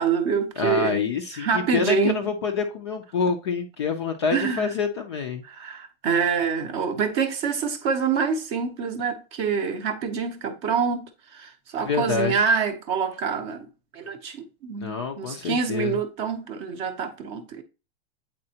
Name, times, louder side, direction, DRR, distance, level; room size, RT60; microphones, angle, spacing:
voice 1, 0.0-2.2 4.3-4.7 5.4-13.7 13.9-17.6, right 6 dB, 20° right, 0.6 m, -26 dB
voice 2, 0.6-5.4 11.8-12.4 14.8-16.0, left 5 dB, 30° left, 0.4 m, -27 dB
8.6 x 4.1 x 2.7 m
supercardioid pair, 180°, 32 cm